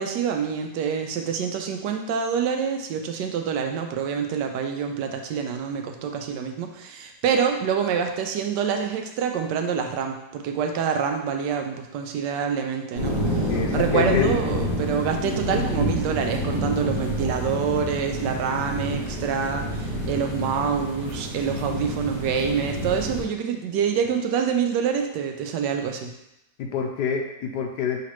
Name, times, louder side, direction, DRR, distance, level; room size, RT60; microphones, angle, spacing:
voice 1, 0.0-26.1, right 7 dB, 85° right, 4 dB, 1.2 m, -26 dB
sound 1, 12.9-23.2, equal, 50° left, 2.3 m, -28 dB
voice 2, 13.5-14.3 26.6-28.0, left 6 dB, 80° left, 2 dB, 1.2 m, -26 dB
5.7 x 3.1 x 3.0 m, 0.88 s
omnidirectional pair, 1.8 m